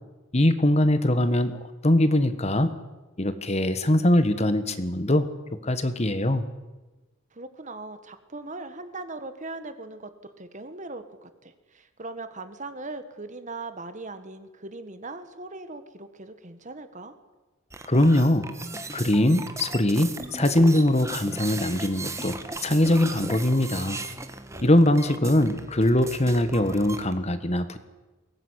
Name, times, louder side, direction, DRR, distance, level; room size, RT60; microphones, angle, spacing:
voice 1, 0.3-2.7 3.2-5.3 5.6-6.4 17.8-18.4 18.9-22.4 22.6-24.0 24.6-27.8, left 1 dB, 30° left, 11 dB, 1.4 m, -22 dB
voice 2, 7.3-17.1 24.5-25.2, right 2 dB, 35° right, 10 dB, 1.8 m, -40 dB
sound 1, 17.7-27.1, right 3 dB, 15° right, 1.6 m, -37 dB
22.0 x 18.5 x 9.9 m, 1.2 s
head